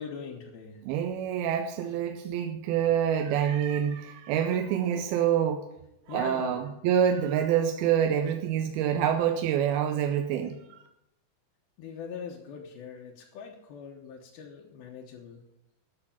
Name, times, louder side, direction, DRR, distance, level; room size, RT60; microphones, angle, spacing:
voice 1, 0.0-0.8 6.1-6.6 11.8-15.4, left 6 dB, 75° left, -1 dB, 2.9 m, -42 dB
voice 2, 0.8-5.7 6.1-10.8, right 9 dB, 85° right, 5 dB, 2.5 m, -26 dB
12.0 x 6.5 x 7.3 m, 0.85 s
omnidirectional pair, 4.5 m